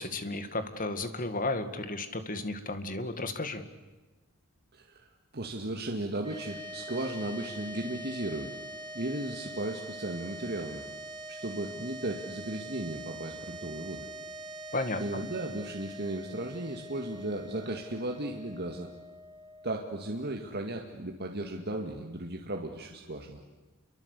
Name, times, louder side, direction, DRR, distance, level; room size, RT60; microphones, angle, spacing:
voice 1, 0.0-3.6 14.7-15.2, left 2 dB, 40° left, 9 dB, 2.1 m, -33 dB
voice 2, 4.7-8.6 8.9-10.8 11.3-14.1 15.0-18.9 19.6-23.4, right 1 dB, 50° right, 2 dB, 2.1 m, -35 dB
sound 1, 6.2-20.6, right 1 dB, 20° right, 3.1 m, -44 dB
29.5 x 24.0 x 8.4 m, 1.2 s
head